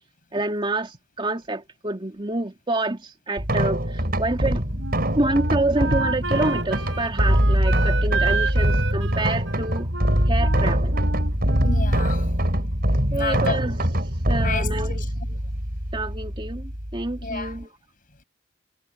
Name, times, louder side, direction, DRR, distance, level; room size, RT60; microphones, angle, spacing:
voice 1, 0.3-4.6 5.2-9.9 10.3-11.0 13.1-13.8 14.3-15.0 15.9-17.8, right 2 dB, 25° right, 2.5 m, -27 dB
sound 1, 3.4-17.6, equal, 55° right, 7.4 m, -23 dB
Wind instrument woodwind instrument, 4.8-12.3, right 4 dB, 85° right, 4.7 m, -31 dB
voice 2, 11.6-12.3 13.1-13.6 14.4-15.0 17.2-17.5, left 4 dB, 50° left, 6.6 m, -30 dB
head